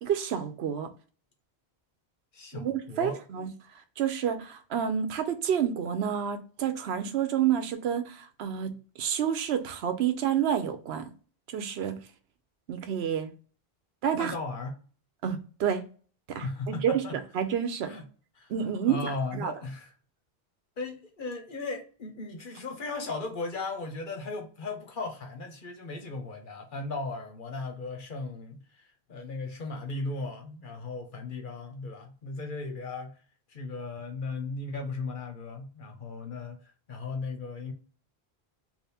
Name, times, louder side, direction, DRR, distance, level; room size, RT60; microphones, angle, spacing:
voice 1, 0.0-0.9 2.5-3.5 4.0-11.1 11.5-12.0 12.7-13.3 14.0-14.3 15.2-15.9 16.3-17.9 18.5-19.5, right 8 dB, 90° right, 0.9 m, -29 dB
voice 2, 2.3-3.2 14.2-14.8 16.4-17.2 17.9-18.0 18.4-18.5 18.9-19.9 20.8-33.2 33.5-36.6 36.9-37.7, left 3 dB, 55° left, 1.0 m, -36 dB
3.5 x 2.5 x 4.2 m
omnidirectional pair, 1.0 m